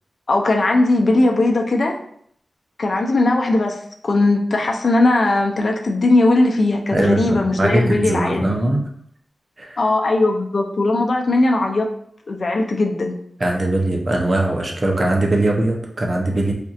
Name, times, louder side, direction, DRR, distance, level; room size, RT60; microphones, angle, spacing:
voice 1, 0.3-2.0 2.8-8.5 9.8-11.9 12.3-13.2, left 2 dB, 60° left, 2 dB, 0.5 m, -18 dB
voice 2, 6.9-8.8 9.6-9.8 13.4-16.5, right 1 dB, 40° right, 0 dB, 0.7 m, -20 dB
4.3 x 2.6 x 2.4 m, 0.67 s
wide cardioid pair, 80°, 0 cm